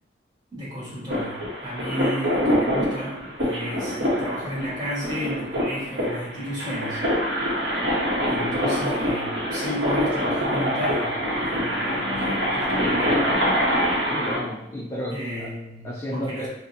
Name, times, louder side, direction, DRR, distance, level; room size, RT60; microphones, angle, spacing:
voice 1, 0.5-7.0 7.5-7.6 8.3-13.3 15.1-16.5, equal, 25° right, -9 dB, 1.3 m, -33 dB
sound 1, 1.1-14.4, equal, 65° right, 0.8 m, -25 dB
voice 2, 14.1-15.5 15.8-16.5, equal, 15° left, -7 dB, 0.4 m, -32 dB
2.8 x 2.1 x 4.0 m, 0.85 s
head